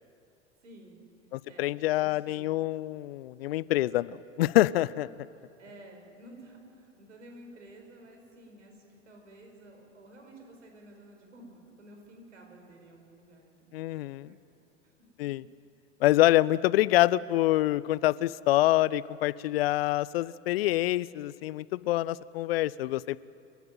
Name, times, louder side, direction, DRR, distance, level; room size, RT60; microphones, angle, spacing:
voice 1, 0.6-1.1 1.5-2.5 5.4-15.1 15.4-15.5, right 1 dB, 75° right, 3 dB, 5.2 m, -52 dB
voice 2, 1.3-5.1 13.7-14.3 15.2-15.4 16.0-23.2, left 16 dB, 55° left, 21 dB, 0.5 m, -26 dB
28.0 x 13.0 x 9.1 m, 2.6 s
figure-of-eight pair, 90°, 37 cm